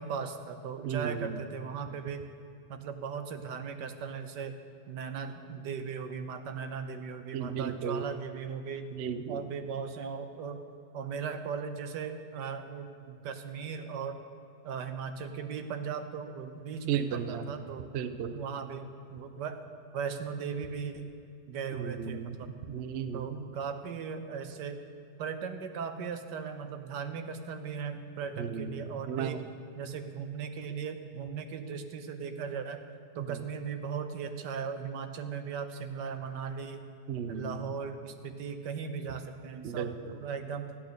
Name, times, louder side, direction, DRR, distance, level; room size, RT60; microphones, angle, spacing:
voice 1, 0.0-2.3 2.7-4.6 4.9-8.9 9.3-10.6 10.9-14.2 14.6-17.9 18.3-19.6 19.9-21.1 21.5-22.6 23.1-24.8 25.2-29.4 29.8-32.8 33.1-36.9 37.3-40.7, right 6 dB, 85° right, 8 dB, 1.5 m, -38 dB
voice 2, 0.8-1.4 7.3-8.0 8.9-9.4 16.9-17.5 17.9-18.4 21.7-22.4 22.7-23.5 28.4-29.4 33.3-33.4 37.1-37.7 39.6-40.2, right 7 dB, 65° right, 10 dB, 0.6 m, -35 dB
14.0 x 9.0 x 6.5 m, 2.5 s
omnidirectional pair, 1.8 m